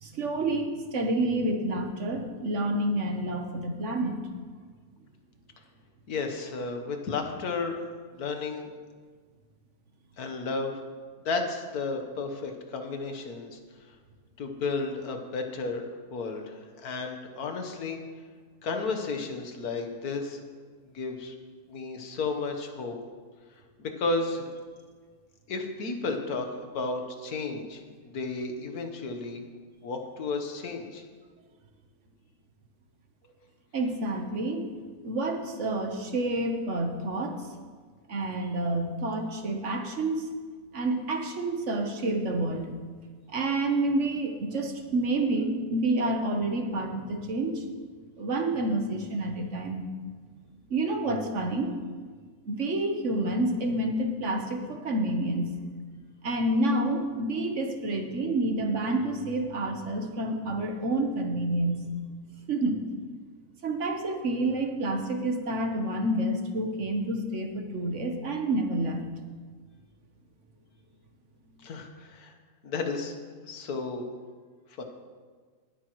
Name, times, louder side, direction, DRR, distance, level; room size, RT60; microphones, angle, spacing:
voice 1, 0.0-4.2 33.7-34.7 35.0-37.4 38.1-40.3 40.7-42.8 43.3-47.6 48.2-49.8 50.7-51.8 52.5-55.5 56.2-61.9 62.5-62.8 63.6-69.1, right 2 dB, 50° right, 4 dB, 1.3 m, -28 dB
voice 2, 6.1-7.8 8.1-8.7 10.2-10.7 11.2-13.6 14.4-15.8 16.1-18.0 18.6-20.4 20.9-21.3 21.7-22.9 23.8-24.5 25.5-29.4 29.8-31.0 71.6-72.3 72.6-73.2 73.5-74.0 74.8-74.9, left 3 dB, 70° left, 4 dB, 1.6 m, -33 dB
19.5 x 9.0 x 3.1 m, 1.5 s
omnidirectional pair, 1.7 m